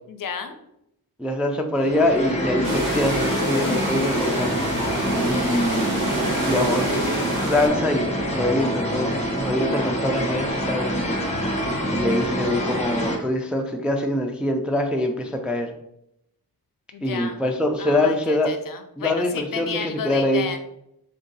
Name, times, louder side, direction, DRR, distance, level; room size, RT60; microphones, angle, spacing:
voice 1, 0.1-0.6 16.9-17.4 17.8-20.6, left 6 dB, 60° left, 8 dB, 0.5 m, -32 dB
voice 2, 1.2-4.6 5.3-7.2 7.4-11.0 11.9-15.7 17.0-18.5 19.0-20.5, left 1 dB, 5° right, 3 dB, 0.3 m, -24 dB
sound 1, 1.7-13.2, equal, 20° left, 0.8 m, -25 dB
sound 2, 2.6-7.7, right 2 dB, 55° right, 1.2 m, -29 dB
3.6 x 2.7 x 3.9 m, 0.79 s
wide cardioid pair, 115°, 38 cm